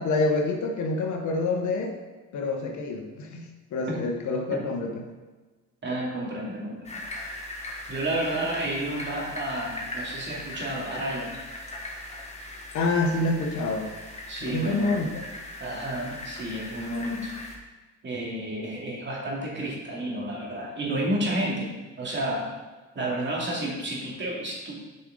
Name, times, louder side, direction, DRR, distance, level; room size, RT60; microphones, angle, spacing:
voice 1, 0.0-1.9 2.3-5.0 12.7-13.9 14.4-15.1, left 2 dB, 70° left, 2 dB, 1.3 m, -27 dB
voice 2, 5.8-7.0 7.9-11.3 14.3-15.0 15.6-17.3 18.0-22.5 22.9-24.8, right 1 dB, 40° right, -3 dB, 2.4 m, -31 dB
sound 1, 6.8-17.6, left 1 dB, 20° left, 1.6 m, -39 dB
8.3 x 5.4 x 3.9 m, 1.3 s
cardioid pair, 90°, 30 cm